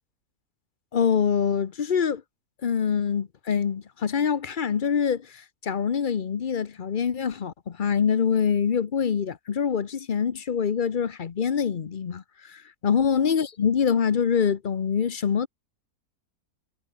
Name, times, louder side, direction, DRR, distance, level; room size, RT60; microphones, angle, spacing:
voice 1, 0.9-2.2 2.6-15.5, left 7 dB, 40° left, 0.8 m, -25 dB
omnidirectional pair, 1.6 m